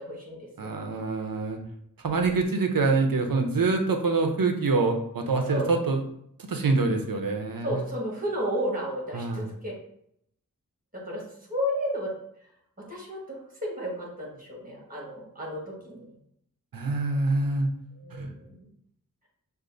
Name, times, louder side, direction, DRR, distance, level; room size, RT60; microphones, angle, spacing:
voice 1, 0.0-0.5 5.5-5.7 7.6-9.7 10.9-11.2 11.5-12.1 12.9-16.0 18.0-18.5, equal, 25° right, -2 dB, 1.4 m, -32 dB
voice 2, 0.6-1.6 2.0-6.0 6.4-7.8 9.1-9.5 16.7-17.7 18.1-18.3, right 3 dB, 85° right, 4 dB, 0.6 m, -25 dB
6.3 x 2.5 x 2.5 m, 0.72 s
wide cardioid pair, 45°, 33 cm